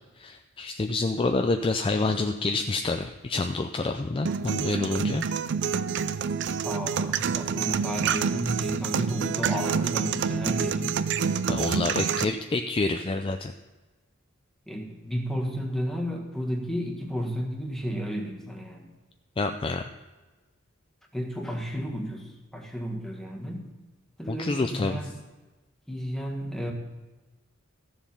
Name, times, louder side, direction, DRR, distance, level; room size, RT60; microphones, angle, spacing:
voice 1, 0.2-5.3 11.5-13.5 19.4-19.9 24.3-25.0, left 3 dB, 25° left, 6 dB, 0.4 m, -27 dB
sound 1, 4.3-12.2, right 6 dB, 60° right, 0.4 m, -27 dB
voice 2, 6.6-11.0 14.7-18.9 21.1-23.7 24.2-25.2 25.9-26.7, equal, ahead, 0 dB, 1.5 m, -32 dB
14.0 x 7.2 x 5.5 m, 1.2 s
head